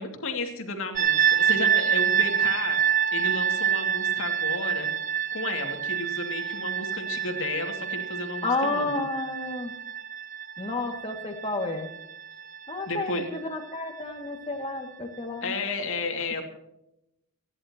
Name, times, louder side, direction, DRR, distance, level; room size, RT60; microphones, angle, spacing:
voice 1, 0.0-2.8 3.1-4.9 5.3-8.9 12.9-13.3 15.4-16.4, left 2 dB, 65° left, 3 dB, 2.6 m, -32 dB
sound 1, 1.0-13.8, right 8 dB, 40° right, 0.8 m, -27 dB
voice 2, 8.4-9.7 10.6-11.9 12.7-15.5, left 2 dB, 25° left, 3 dB, 2.3 m, -31 dB
30.0 x 11.0 x 3.0 m, 0.85 s
head